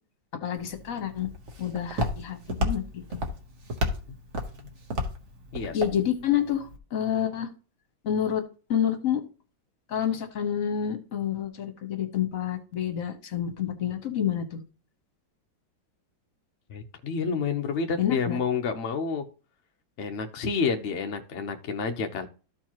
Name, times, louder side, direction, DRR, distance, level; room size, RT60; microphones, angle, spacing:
voice 1, 0.4-1.3 1.6-3.2 5.7-7.5 8.0-8.4 8.7-9.2 9.9-14.6 18.0-18.4, left 9 dB, 50° left, 6 dB, 1.3 m, -28 dB
Walk footsteps, 0.6-6.8, left 1 dB, 45° right, 1.2 m, -33 dB
voice 2, 5.5-5.8 16.7-19.3 20.0-22.3, left 5 dB, 65° left, 4 dB, 0.7 m, -29 dB
13.5 x 4.6 x 2.9 m, 0.35 s
omnidirectional pair, 2.2 m